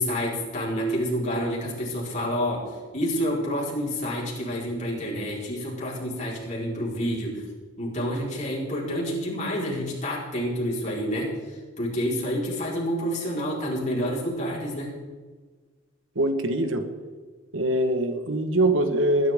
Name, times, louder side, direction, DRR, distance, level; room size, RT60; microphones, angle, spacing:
voice 1, 0.0-7.4 7.8-11.3 11.8-15.0, equal, 35° left, -4 dB, 4.5 m, -28 dB
voice 2, 16.1-16.8 17.5-19.3, right 1 dB, 75° right, 7 dB, 1.4 m, -23 dB
20.5 x 11.0 x 3.7 m, 1.4 s
head